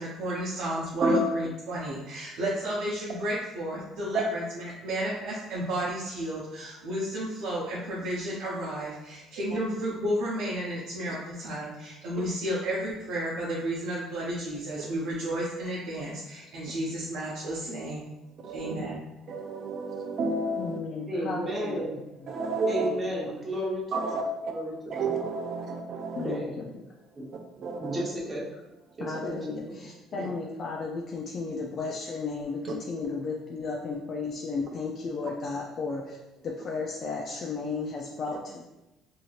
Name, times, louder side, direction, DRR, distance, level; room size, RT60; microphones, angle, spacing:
voice 1, 0.0-18.1 18.5-19.0, right 1 dB, 85° right, -7 dB, 0.7 m, -32 dB
voice 2, 18.4-18.7 19.3-20.8 22.3-22.9 23.9-24.2 24.9-26.4 27.6-28.0 30.2-30.3, right 3 dB, 50° right, 3 dB, 0.5 m, -30 dB
voice 3, 20.6-21.9 22.3-22.4 22.8-22.9 26.2-26.7 29.0-36.2 36.4-38.7, left 4 dB, 45° left, -2 dB, 0.4 m, -34 dB
voice 4, 21.1-22.0 22.7-24.0 24.5-25.2 26.2-26.6 27.2-27.3 27.8-28.4 29.0-29.8 30.1-30.3, right 1 dB, 25° right, -4 dB, 0.9 m, -33 dB
3.1 x 2.7 x 2.4 m, 0.97 s
cardioid pair, 120°, 0 cm